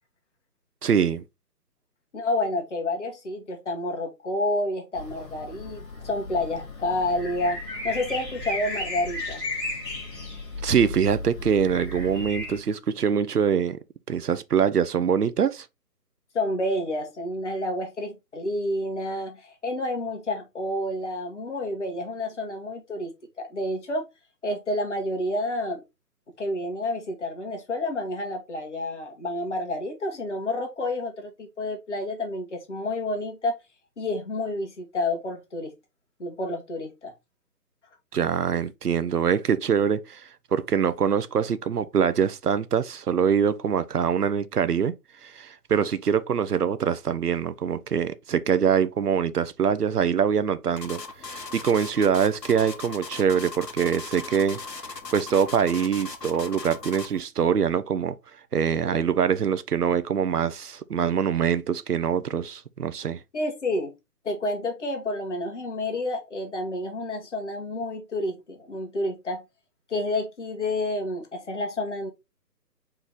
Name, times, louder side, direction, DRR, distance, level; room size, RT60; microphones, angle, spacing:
voice 1, 0.8-1.2 10.6-13.8 14.1-15.7 38.1-44.9 45.2-54.6 54.9-58.2 58.5-63.2, right 7 dB, 70° right, 0.6 m, -24 dB
voice 2, 2.1-7.6 7.8-9.4 16.3-24.1 24.4-25.8 26.4-33.5 34.0-35.7 36.2-37.1 58.7-59.0 63.3-63.9 64.2-69.4 69.9-72.1, left 1 dB, 45° left, 1.5 m, -29 dB
sound 1, 4.9-12.6, left 2 dB, 10° left, 2.1 m, -34 dB
sound 2, 50.8-57.2, left 4 dB, 85° left, 1.1 m, -38 dB
4.4 x 3.2 x 3.5 m
figure-of-eight pair, 150°, 49 cm